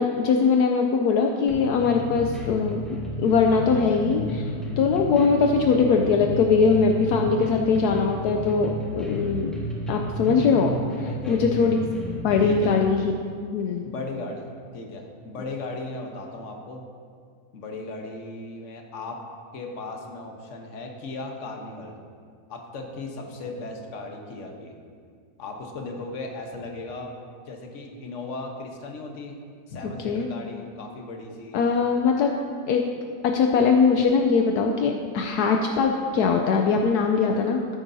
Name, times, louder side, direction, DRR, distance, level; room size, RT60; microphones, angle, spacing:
voice 1, 0.0-2.8 3.2-4.5 4.8-8.7 9.0-9.5 9.9-10.8 11.3-11.8 12.2-13.0 13.5-13.8 30.0-30.3 31.5-32.3 32.7-32.8 33.3-37.6, left 5 dB, 75° left, 2 dB, 1.1 m, -21 dB
sound 1, 1.5-12.6, equal, ahead, 1.5 m, -32 dB
voice 2, 11.0-11.6 12.4-12.7 13.8-14.5 14.7-16.8 17.5-19.2 19.5-21.9 22.5-24.7 25.4-27.1 27.5-29.4 29.7-31.6, left 3 dB, 50° left, 2 dB, 1.3 m, -36 dB
13.0 x 9.9 x 2.7 m, 2.1 s
omnidirectional pair, 1.8 m